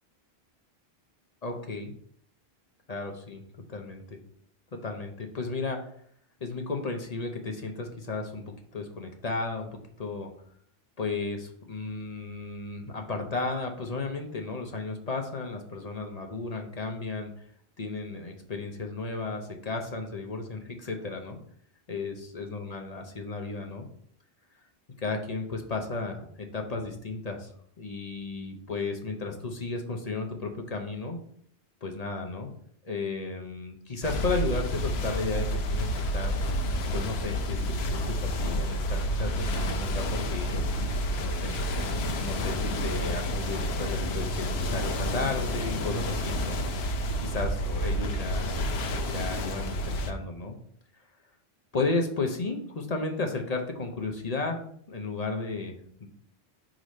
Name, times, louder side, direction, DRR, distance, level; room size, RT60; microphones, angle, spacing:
voice 1, 1.4-1.9 2.9-3.4 3.7-4.2 4.7-5.8 6.4-10.3 11.0-17.3 17.8-21.4 21.9-23.9 25.0-27.5 27.8-31.2 31.8-32.5 32.8-36.3 36.9-40.6 41.2-41.5 42.2-46.7 47.1-48.5 49.0-50.6 51.7-54.6 54.9-55.7 56.0-56.1, left 3 dB, 40° left, 3 dB, 0.8 m, -34 dB
sound 1, 34.0-50.1, equal, 75° left, 0.9 m, -29 dB
4.8 x 3.8 x 5.3 m, 0.63 s
omnidirectional pair, 1.1 m